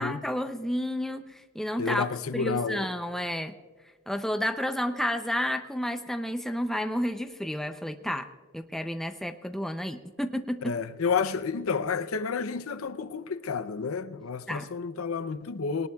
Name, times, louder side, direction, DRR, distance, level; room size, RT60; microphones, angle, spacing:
voice 1, 0.0-2.0 2.3-3.5 4.1-8.3 8.5-10.8 14.5-14.7, equal, ahead, 0.5 m, -31 dB
voice 2, 1.8-2.9 10.6-15.9, left 5 dB, 85° left, 0.6 m, -30 dB
20.5 x 18.5 x 2.3 m
head